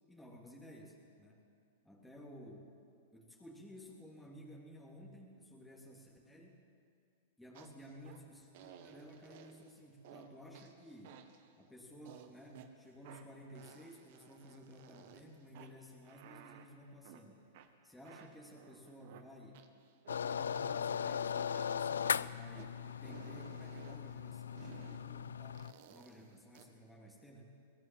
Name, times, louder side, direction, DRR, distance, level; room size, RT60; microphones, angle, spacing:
voice 1, 0.1-1.4 1.8-2.7 3.1-6.6 7.4-11.2 11.6-17.4 17.8-19.6 20.1-27.6, equal, 5° left, -3 dB, 3.3 m, -54 dB
sound 1, 7.5-8.2 8.5-9.7 10.0-10.3 10.5-11.5 12.0-12.7 13.0-15.2 15.5-17.2 17.5-20.2 20.5-20.7 21.0-22.7 23.0-24.0 24.5-25.0 25.5-26.6, right 9 dB, 55° right, 1.7 m, -56 dB
sound 2, 20.1-25.7, left 7 dB, 85° left, 0.4 m, -38 dB
22.5 x 17.5 x 7.7 m, 2.4 s
hypercardioid pair, 110°, 0 cm